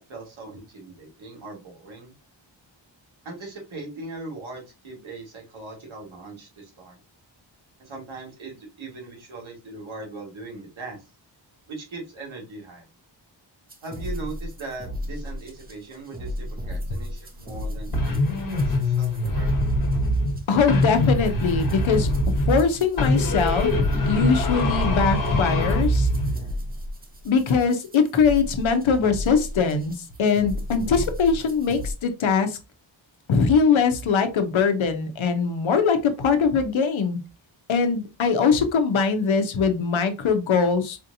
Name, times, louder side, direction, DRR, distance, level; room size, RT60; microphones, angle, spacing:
voice 1, 0.0-2.1 3.2-7.0 7.8-11.0 11.7-12.8 13.8-19.5, right 3 dB, 85° right, 1.8 m, -39 dB
sound 1, 13.7-31.9, left 1 dB, 20° right, 0.6 m, -34 dB
sound 2, 17.9-20.4 20.7-22.7 23.0-26.4, left 1 dB, 45° left, 1.1 m, -23 dB
voice 2, 20.5-26.1 27.2-32.6 33.3-37.2 37.7-41.1, left 5 dB, 85° left, 0.8 m, -22 dB
4.3 x 2.8 x 2.6 m
wide cardioid pair, 175°, 46 cm